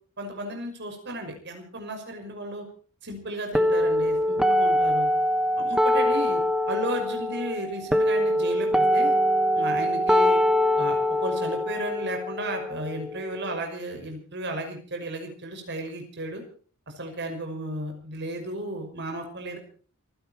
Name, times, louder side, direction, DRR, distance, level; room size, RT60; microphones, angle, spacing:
voice 1, 0.2-2.6 3.0-5.1 5.6-6.4 6.7-9.1 9.5-10.4 10.8-16.4 17.0-19.6, right 1 dB, 55° right, 4 dB, 5.9 m, -34 dB
sound 1, 3.5-13.5, equal, 5° right, 1.1 m, -23 dB
28.5 x 10.5 x 4.4 m, 0.42 s
head